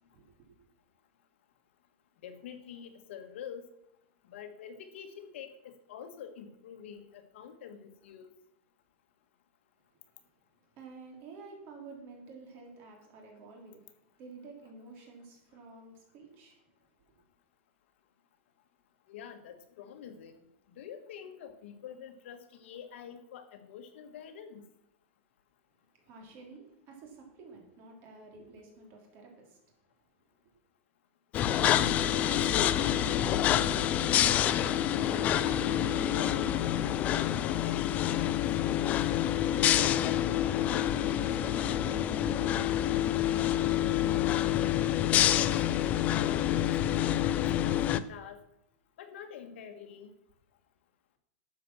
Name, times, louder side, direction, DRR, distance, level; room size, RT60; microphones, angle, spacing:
voice 1, 0.1-0.6 10.8-13.8 14.2-16.6 26.1-29.7 30.4-30.5 40.3-44.2, right 3 dB, 35° right, 1 dB, 3.4 m, -51 dB
voice 2, 2.2-3.7 4.2-8.3 19.1-20.4 20.7-24.6 31.5-33.9 34.9-36.5 36.8-39.0 45.3-48.4 49.0-50.1, left 8 dB, 65° left, 7 dB, 1.7 m, -47 dB
sound 1, 31.3-48.0, left 11 dB, 20° left, 0.4 m, -27 dB
12.5 x 7.8 x 6.3 m, 0.81 s
supercardioid pair, 175°, 7 cm